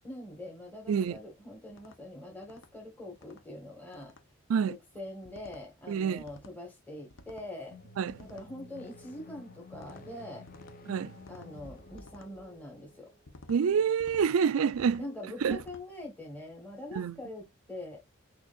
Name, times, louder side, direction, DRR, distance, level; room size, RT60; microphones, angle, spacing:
voice 1, 0.0-4.1 4.6-7.8 8.2-10.5 11.3-13.1 15.0-18.0, left 1 dB, 10° left, 1.5 m, -44 dB
voice 2, 0.9-1.2 4.5-4.8 5.9-6.2 8.0-8.1 10.9-11.1 13.5-15.0 15.4-15.6 16.9-17.1, right 7 dB, 90° right, 0.4 m, -27 dB
sound 1, 1.7-2.0 2.4-2.7 3.2-3.4 3.9-4.2 5.2-5.6 6.2-6.6 7.1-7.5 8.1-8.5 9.7-10.0 10.5-10.8 11.2-11.5 12.0-12.3 13.3-13.6 14.0-14.3 14.7-15.1 15.5-15.8, left 2 dB, 70° left, 0.8 m, -53 dB
sound 2, 7.6-13.2, left 2 dB, 40° left, 0.9 m, -51 dB
6.2 x 3.2 x 2.4 m
head